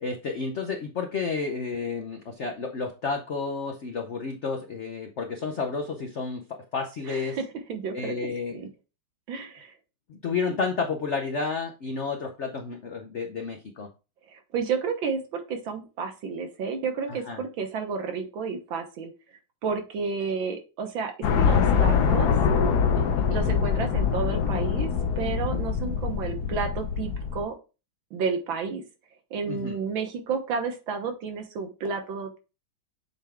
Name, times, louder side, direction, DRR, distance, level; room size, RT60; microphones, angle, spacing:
voice 1, 0.0-7.4 7.9-8.7 10.1-13.9 17.1-17.4 22.9-23.3 29.5-29.8, left 4 dB, 80° left, 4 dB, 0.6 m, -31 dB
voice 2, 7.1-7.4 7.7-8.1 8.5-8.7 9.3-9.7 10.5-10.6 14.3-19.1 19.6-22.3 23.3-24.9 25.2-27.5 28.1-28.8 29.3-32.4, right 5 dB, 70° right, 5 dB, 1.9 m, -31 dB
sound 1, 21.2-27.4, left 6 dB, 60° left, 1.2 m, -24 dB
8.0 x 3.4 x 3.6 m, 0.31 s
omnidirectional pair, 2.3 m